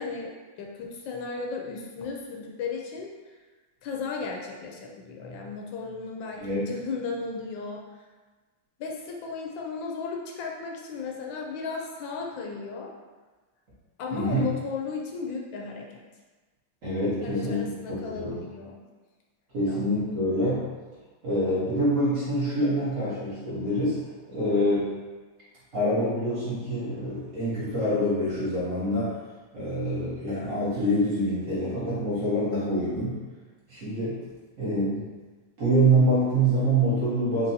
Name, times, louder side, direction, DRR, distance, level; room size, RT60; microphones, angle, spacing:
voice 1, 0.0-3.3 3.8-8.1 8.8-12.9 14.0-16.0 17.2-18.8 19.6-19.8, left 4 dB, 80° left, 0 dB, 1.3 m, -35 dB
voice 2, 6.4-6.7 14.1-14.5 16.8-18.4 19.5-20.6 21.2-24.0 24.3-24.9 25.7-29.1 29.5-33.2 33.7-34.2 34.6-35.1 35.6-37.5, right 1 dB, 45° right, -10 dB, 1.5 m, -25 dB
4.5 x 2.7 x 2.7 m, 1.3 s
omnidirectional pair, 2.1 m